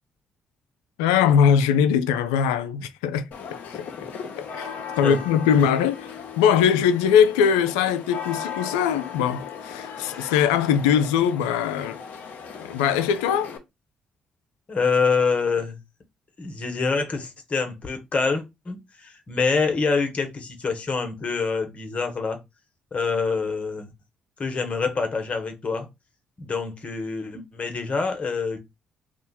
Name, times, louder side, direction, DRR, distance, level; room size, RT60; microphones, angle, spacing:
voice 1, 1.0-3.3 3.7-3.9 4.4-4.7 5.0-6.1 6.4-12.0 12.6-13.5, left 8 dB, 85° left, 0.3 m, -21 dB
sound 1, 3.3-13.6, left 7 dB, 65° left, 0.7 m, -37 dB
voice 2, 14.7-15.8 16.4-22.4 22.9-23.9 24.4-25.9 26.4-28.6, left 4 dB, 45° left, 1.1 m, -26 dB
2.7 x 2.3 x 4.1 m
hypercardioid pair, 50°, 3 cm